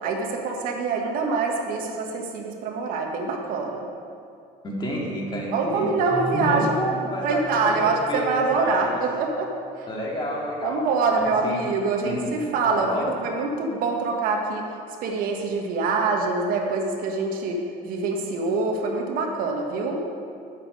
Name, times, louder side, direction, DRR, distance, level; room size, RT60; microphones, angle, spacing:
voice 1, 0.0-3.9 5.5-6.8 7.2-9.9 10.6-12.9 13.2-14.6 15.0-20.0, right 4 dB, 70° right, 2 dB, 1.4 m, -25 dB
voice 2, 4.6-5.9 6.3-9.0 9.9-10.9 11.1-11.6 12.0-12.2 12.7-13.1, left 1 dB, 30° left, -2 dB, 2.3 m, -29 dB
Keyboard (musical), 6.0-9.8, right 1 dB, 90° right, 2.0 m, -39 dB
10.5 x 7.4 x 5.2 m, 2.4 s
cardioid pair, 110°, 15 cm